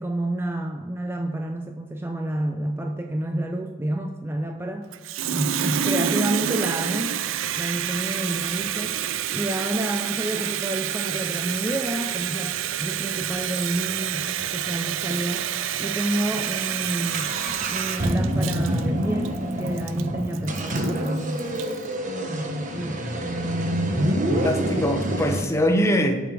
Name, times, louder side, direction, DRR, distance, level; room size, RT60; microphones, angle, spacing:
voice 1, 0.0-4.9 5.3-7.2 7.6-9.0 9.3-15.5 15.8-17.3 17.7-21.5 22.3-23.1, right 1 dB, 10° right, 4 dB, 0.5 m, -29 dB
Water tap faucet, 4.9-21.8, right 10 dB, 90° right, 0.4 m, -28 dB
sound 1, 6.1-6.2 6.6-9.3 9.9-10.0 10.3-10.5 10.9-14.5 14.8-14.9 15.1-15.2 15.8-16.0 16.3-25.4, equal, 40° right, 1.0 m, -28 dB
voice 2, 24.3-26.2, equal, 15° left, 4 dB, 0.9 m, -23 dB
8.1 x 5.9 x 4.8 m, 1.5 s
head